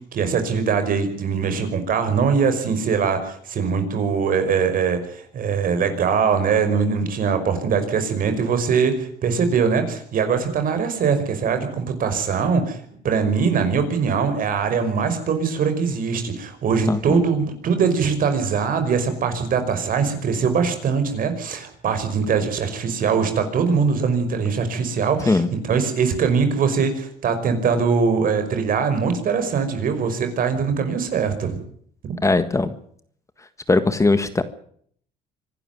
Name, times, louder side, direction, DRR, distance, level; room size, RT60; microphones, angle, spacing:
voice 1, 0.1-12.8 13.0-25.4 25.7-31.6, right 6 dB, 55° right, 8 dB, 5.3 m, -22 dB
voice 2, 16.9-17.2 25.3-25.5 32.2-32.7 33.7-34.4, left 3 dB, 15° left, 11 dB, 1.6 m, -19 dB
25.0 x 12.0 x 9.5 m, 0.62 s
cardioid pair, 110°, 17 cm